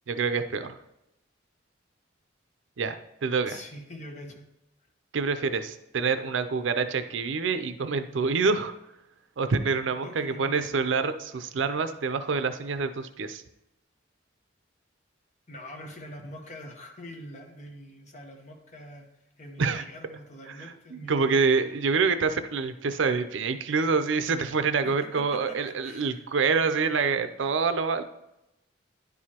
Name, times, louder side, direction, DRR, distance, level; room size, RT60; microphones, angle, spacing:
voice 1, 0.1-0.8 2.8-3.6 5.1-8.7 9.4-13.4 19.6-19.8 20.9-28.0, right 4 dB, 80° right, 10 dB, 0.5 m, -26 dB
voice 2, 3.5-4.5 10.0-10.7 15.5-19.1 19.4-21.4 24.8-26.2, left 1 dB, 40° left, 3 dB, 1.0 m, -44 dB
10.5 x 4.8 x 2.9 m, 0.88 s
head